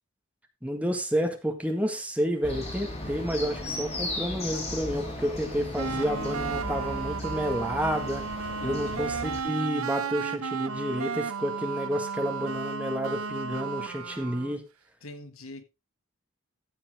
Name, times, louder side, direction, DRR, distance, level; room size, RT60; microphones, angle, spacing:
voice 1, 0.6-8.3 8.6-14.6, equal, 5° right, 1.8 m, -30 dB
sound 1, 2.4-9.4, left 1 dB, 30° left, 3.2 m, -36 dB
sound 2, 5.8-14.6, right 5 dB, 85° right, 0.8 m, -34 dB
voice 2, 8.6-9.2 15.0-15.6, left 2 dB, 85° left, 1.7 m, -43 dB
14.5 x 7.2 x 3.7 m
head